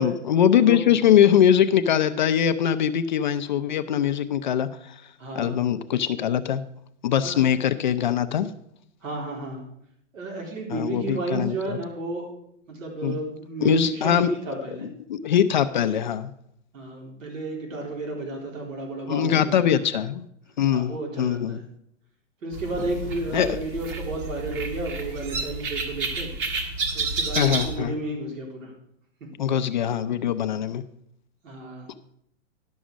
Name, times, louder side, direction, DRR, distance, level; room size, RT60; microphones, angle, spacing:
voice 1, 0.0-5.0 5.4-6.6 7.0-8.5 10.7-11.8 13.0-13.2 13.6-14.3 14.8-16.3 19.1-20.3 20.6-21.6 23.3-23.6 27.4-27.9 29.4-30.8, left 9 dB, 40° left, 11 dB, 0.4 m, -22 dB
voice 2, 0.5-1.0 5.2-5.6 7.2-7.4 9.0-9.7 10.1-12.3 12.7-14.9 16.7-19.5 20.7-21.6 22.4-26.3 26.9-28.7 31.4-31.9, right 2 dB, 85° right, 1 dB, 4.0 m, -32 dB
sound 1, 22.5-27.8, right 3 dB, 40° right, 1.8 m, -30 dB
11.5 x 6.3 x 6.1 m, 0.73 s
hypercardioid pair, 160°, 38 cm